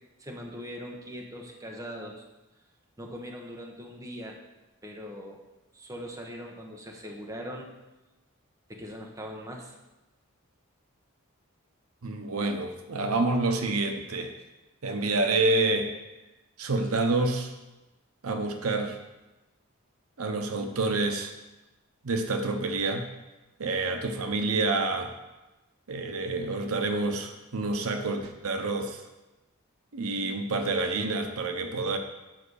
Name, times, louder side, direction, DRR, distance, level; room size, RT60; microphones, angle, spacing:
voice 1, 0.2-2.2 3.0-4.4 4.8-5.4 5.7-7.7 8.7-9.7, equal, 15° right, 0 dB, 1.1 m, -41 dB
voice 2, 12.0-14.3 14.8-15.9 16.6-17.5 18.2-19.0 20.2-21.3 22.0-23.1 23.6-25.1 25.9-29.0 29.9-32.0, right 2 dB, 85° right, 5 dB, 0.9 m, -28 dB
7.6 x 5.6 x 6.4 m, 1.0 s
head